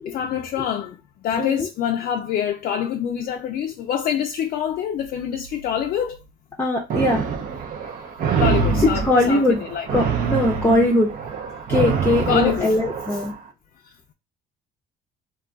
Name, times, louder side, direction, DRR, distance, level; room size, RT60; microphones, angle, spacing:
voice 1, 0.1-6.2 8.4-9.9 12.3-12.8 13.8-14.1, left 9 dB, 60° left, 0.4 m, -26 dB
voice 2, 6.6-7.2 8.8-9.6 9.9-11.1 11.7-13.3, left 2 dB, 15° left, 0.6 m, -20 dB
sound 1, 6.9-13.3, right 6 dB, 60° right, 0.6 m, -25 dB
2.3 x 2.3 x 3.8 m
cardioid pair, 110°, 17 cm